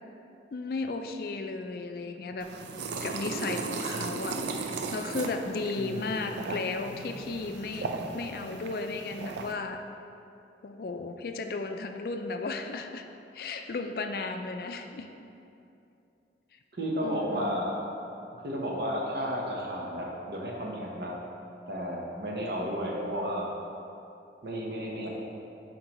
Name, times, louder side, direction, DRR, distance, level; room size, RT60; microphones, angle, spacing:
voice 1, 0.5-2.5 2.7-7.9 8.1-9.8 10.6-13.1 13.3-15.1 17.0-17.5, left 3 dB, 55° left, 6 dB, 0.4 m, -35 dB
sound 1, 2.4-9.5, right 4 dB, 80° right, 0.4 m, -36 dB
voice 2, 5.8-6.2 16.8-17.8 18.4-21.2 21.7-23.5 24.4-25.1, equal, 65° right, -2 dB, 1.0 m, -32 dB
7.6 x 4.6 x 3.0 m, 2.7 s
head